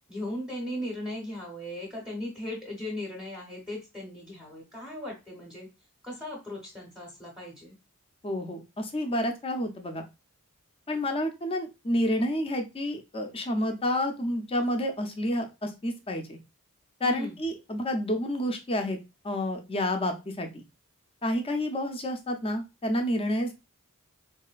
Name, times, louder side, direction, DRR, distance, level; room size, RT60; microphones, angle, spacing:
voice 1, 0.1-5.7 6.0-7.8 17.0-17.4, left 1 dB, 5° right, -2 dB, 0.8 m, -37 dB
voice 2, 8.2-10.0 10.9-16.4 17.0-19.0 19.2-20.6 21.2-23.5, left 1 dB, 25° left, 5 dB, 0.6 m, -29 dB
3.9 x 2.6 x 2.4 m, 0.26 s
head